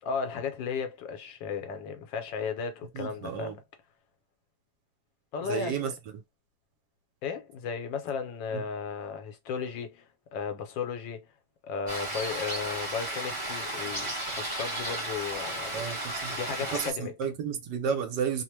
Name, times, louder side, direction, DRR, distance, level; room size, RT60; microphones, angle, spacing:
voice 1, 0.0-3.6 5.3-5.9 7.2-10.1 10.3-11.3 11.6-15.8 16.3-17.1, left 6 dB, 80° left, 1.4 m, -35 dB
voice 2, 2.9-3.6 5.4-6.2 8.5-8.7 15.7-16.4 16.7-18.4, right 7 dB, 70° right, 1.3 m, -32 dB
sound 1, 11.9-16.9, right 1 dB, 25° right, 0.8 m, -34 dB
3.2 x 2.1 x 3.0 m
omnidirectional pair, 2.0 m